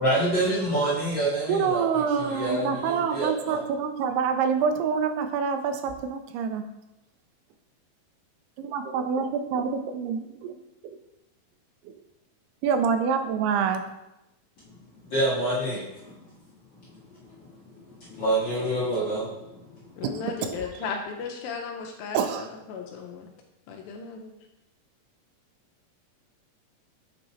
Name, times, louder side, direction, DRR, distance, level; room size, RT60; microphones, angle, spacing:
voice 1, 0.0-3.6 15.1-15.8 18.1-19.3, right 1 dB, 45° left, -10 dB, 1.5 m, -26 dB
voice 2, 1.5-6.7 8.6-10.6 11.9-12.0 12.6-13.9 20.4-20.7 22.1-22.5, right 6 dB, 85° right, 7 dB, 2.6 m, -26 dB
voice 3, 20.0-23.3 23.7-24.3, left 5 dB, 80° left, 2 dB, 2.3 m, -36 dB
7.9 x 2.8 x 4.2 m, 0.93 s
omnidirectional pair, 4.5 m